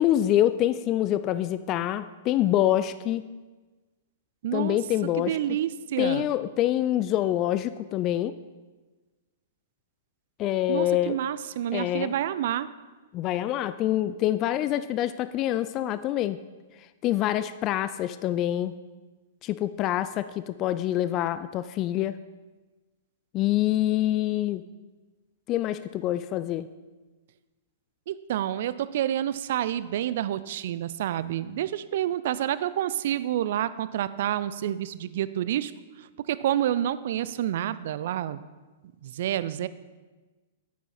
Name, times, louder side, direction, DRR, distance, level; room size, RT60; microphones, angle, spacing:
voice 1, 0.0-3.2 4.5-5.4 6.0-8.4 10.4-11.2 11.7-12.1 13.1-16.4 17.0-18.7 19.4-22.2 23.3-24.6 25.5-26.7, left 13 dB, 35° left, 13 dB, 0.3 m, -26 dB
voice 2, 4.4-4.8 5.2-6.3 10.7-12.7 28.1-35.7 36.3-38.4 39.0-39.7, right 11 dB, 55° right, 16 dB, 0.4 m, -28 dB
9.4 x 8.1 x 4.3 m, 1.3 s
figure-of-eight pair, 105°, 0 cm